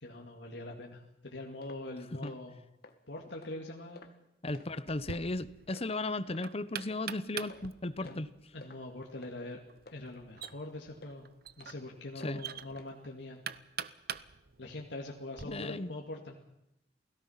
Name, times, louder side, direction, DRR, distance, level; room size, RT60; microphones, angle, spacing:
voice 1, 0.0-2.6 3.1-4.0 8.0-8.2 8.5-9.6 9.9-11.3 11.6-13.4 14.6-16.4, left 2 dB, 80° left, 0 dB, 2.3 m, -43 dB
sound 1, 1.6-1.8 2.2-2.4 2.8-2.9 3.4-3.5 3.9-4.2 4.5-4.7 5.1-5.3 5.7-5.9 6.3-6.4 6.9-7.0 7.5-7.7 8.1-8.3 8.6-8.8 9.2-9.4 9.9-10.0 10.4-10.6 11.0-11.1 11.6-11.7 12.2-12.4 12.8-12.9 13.4-13.5, left 2 dB, 60° left, 2.0 m, -53 dB
voice 2, 4.4-8.3 12.2-12.4 15.4-15.9, left 2 dB, 35° left, 14 dB, 0.9 m, -35 dB
Knock, 4.9-15.5, right 8 dB, 60° right, 0.8 m, -45 dB
28.5 x 18.0 x 5.8 m, 0.85 s
head